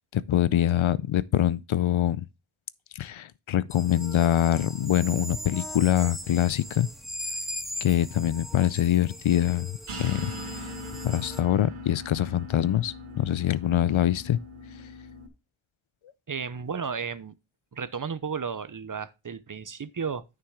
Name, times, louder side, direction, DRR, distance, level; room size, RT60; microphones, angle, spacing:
voice 1, 0.1-2.2 3.0-6.9 7.8-10.7 11.0-14.4, left 12 dB, 70° left, 0.6 m, -24 dB
sound 1, 3.7-11.4, equal, ahead, 1.1 m, -39 dB
sound 2, 9.9-15.3, left 1 dB, 85° right, 1.3 m, -40 dB
voice 2, 16.3-17.4 17.7-20.2, right 6 dB, 40° right, 0.7 m, -33 dB
9.8 x 5.9 x 3.7 m
wide cardioid pair, 60°, 49 cm